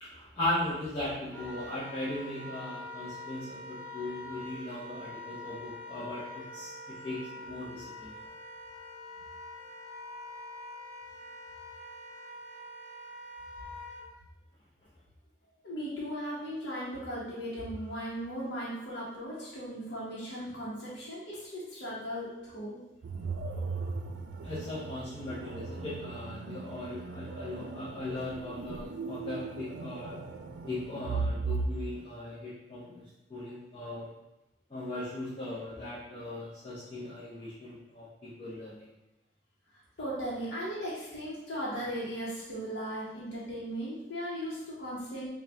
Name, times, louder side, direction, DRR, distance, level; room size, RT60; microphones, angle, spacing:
voice 1, 0.0-8.2 24.4-30.2 30.6-33.0 33.3-34.1 34.7-38.9, left 1 dB, 30° left, -10 dB, 0.7 m, -38 dB
Wind instrument woodwind instrument, 1.3-14.0, left 1 dB, 5° left, 1.3 m, -45 dB
voice 2, 15.6-22.8 40.0-45.3, equal, 80° left, -8 dB, 0.9 m, -37 dB
sound 1, 23.0-31.7, right 4 dB, 85° right, 0.4 m, -37 dB
4.2 x 2.3 x 3.4 m, 0.96 s
head